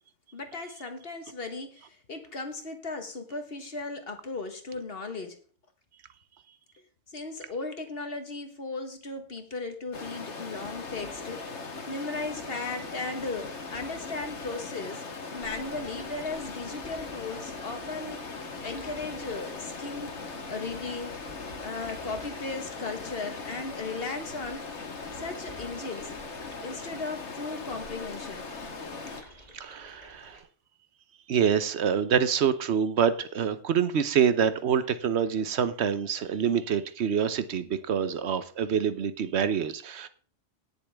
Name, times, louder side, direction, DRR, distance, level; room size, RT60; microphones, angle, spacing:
voice 1, 0.3-5.4 7.1-15.0 15.3-18.2 18.6-21.1 21.6-24.6 25.1-26.1 26.6-28.5, left 3 dB, 60° left, 6 dB, 1.7 m, -36 dB
Stream, 9.9-29.2, left 4 dB, 90° left, 1.8 m, -39 dB
Stream 2, 15.4-30.4, left 1 dB, 35° left, 3.0 m, -52 dB
voice 2, 29.5-30.4 31.3-40.1, right 7 dB, 75° right, 13 dB, 1.1 m, -26 dB
17.5 x 6.9 x 3.5 m, 0.42 s
omnidirectional pair, 1.1 m